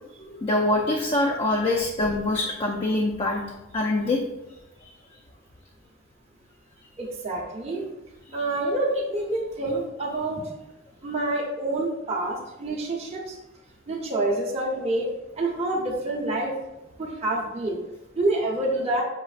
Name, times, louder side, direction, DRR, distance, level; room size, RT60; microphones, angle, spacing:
voice 1, 0.2-3.4 3.7-4.2, left 2 dB, 30° left, -1 dB, 0.4 m, -24 dB
voice 2, 7.0-7.8 8.3-10.4 11.0-13.4 13.9-15.1 15.4-16.5 17.0-17.8 18.1-19.0, right 2 dB, 30° right, -3 dB, 0.8 m, -27 dB
6.1 x 3.0 x 2.4 m, 0.99 s
head